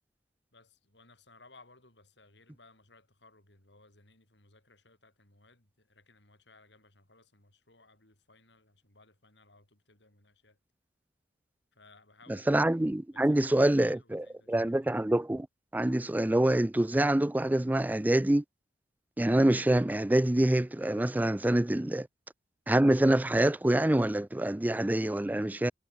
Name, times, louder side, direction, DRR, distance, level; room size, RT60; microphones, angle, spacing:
voice 1, 0.5-10.6 11.7-12.5 13.1-15.0, left 3 dB, 70° left, 7.4 m, -61 dB
voice 2, 12.5-15.5 15.7-18.4 19.2-22.1 22.7-25.7, right 1 dB, 10° right, 0.3 m, -26 dB
head